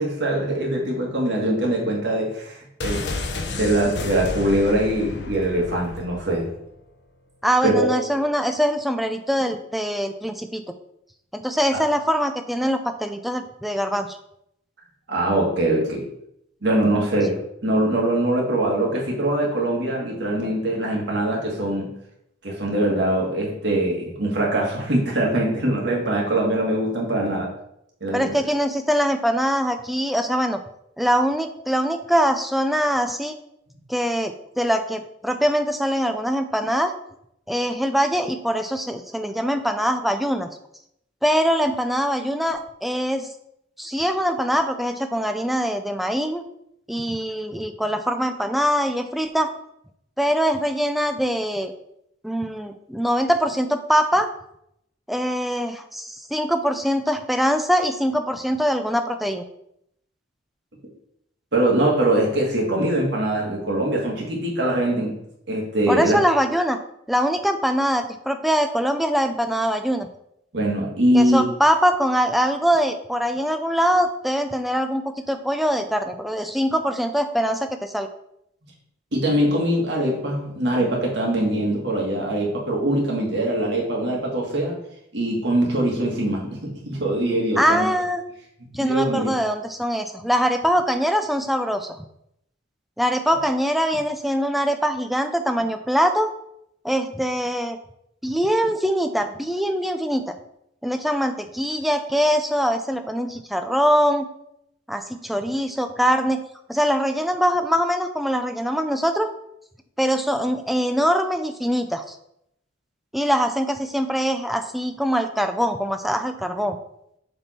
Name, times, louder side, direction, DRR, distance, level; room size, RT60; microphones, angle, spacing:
voice 1, 0.0-3.0 3.5-6.5 7.6-7.9 11.7-11.8 15.1-16.1 16.6-21.9 22.4-27.5 28.0-28.3 61.5-65.2 65.5-66.2 70.5-71.4 79.1-84.8 85.1-87.9 88.8-89.3, right 1 dB, 70° right, -1 dB, 1.7 m, -22 dB
sound 1, 2.8-6.6 6.8-6.9, left 3 dB, 65° left, 0.8 m, -31 dB
voice 2, 7.4-10.6 11.3-14.2 28.1-30.6 31.0-33.4 33.9-36.9 37.5-40.5 41.2-43.3 43.8-46.4 46.9-49.5 50.2-51.7 52.2-54.3 55.1-59.4 65.9-66.8 67.1-70.1 71.1-78.1 87.6-88.2 88.7-92.0 93.0-96.3 96.8-97.8 98.2-100.3 100.8-104.3 104.9-106.4 106.7-109.3 110.0-112.2 113.1-116.8, equal, ahead, 7 dB, 0.4 m, -23 dB
7.0 x 3.6 x 4.2 m, 0.76 s
head